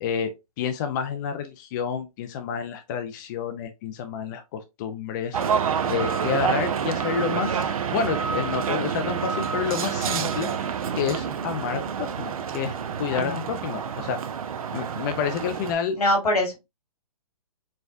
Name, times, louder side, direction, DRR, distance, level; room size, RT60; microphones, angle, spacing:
voice 1, 0.0-5.4 5.9-10.5 10.9-14.2 14.7-16.0, left 7 dB, 30° left, 0.4 m, -29 dB
sound 1, 5.3-15.7, right 7 dB, 65° right, 0.6 m, -28 dB
voice 2, 13.1-13.6 16.0-16.6, left 1 dB, 80° left, 2.1 m, -24 dB
4.4 x 2.3 x 2.5 m
hypercardioid pair, 135°, 19 cm